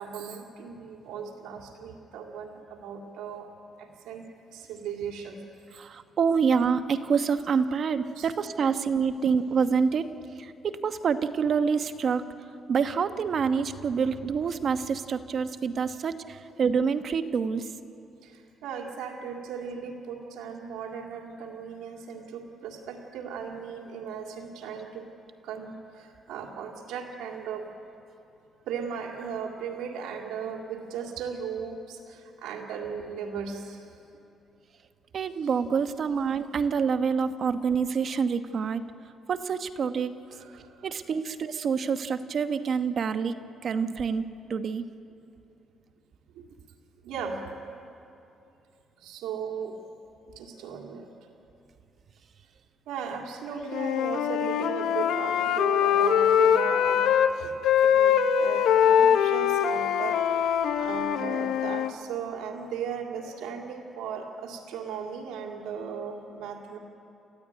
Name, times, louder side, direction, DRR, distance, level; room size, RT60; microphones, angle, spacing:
voice 1, 0.0-3.5 3.8-4.2 4.5-5.4 8.2-8.3 18.2-25.0 25.4-27.7 28.7-33.8 40.3-40.9 46.4-46.5 47.0-47.6 49.0-49.8 50.4-51.1 52.9-57.0 57.4-57.5 57.8-60.5 60.8-66.8, right 6 dB, 90° right, 1 dB, 2.2 m, -37 dB
voice 2, 5.8-10.1 10.4-12.2 12.7-17.7 35.1-38.8 39.3-40.1 40.8-43.3 43.6-44.9, right 6 dB, 55° right, 9 dB, 1.1 m, -27 dB
Wind instrument woodwind instrument, 53.7-57.3 57.6-61.9, left 9 dB, 80° left, 1.0 m, -23 dB
29.5 x 14.0 x 9.5 m, 2.7 s
cardioid pair, 90°, 0 cm